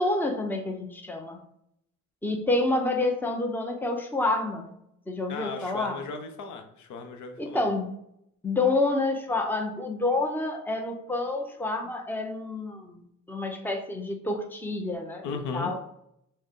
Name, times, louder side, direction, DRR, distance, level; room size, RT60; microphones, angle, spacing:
voice 1, 0.0-1.4 2.2-4.7 5.1-6.0 7.4-7.9 8.4-13.0 13.3-15.8, left 2 dB, 5° left, 3 dB, 0.7 m, -28 dB
voice 2, 5.3-7.6 15.2-15.7, left 4 dB, 75° left, 6 dB, 0.7 m, -36 dB
6.1 x 2.2 x 3.6 m, 0.75 s
cardioid pair, 90°, 30 cm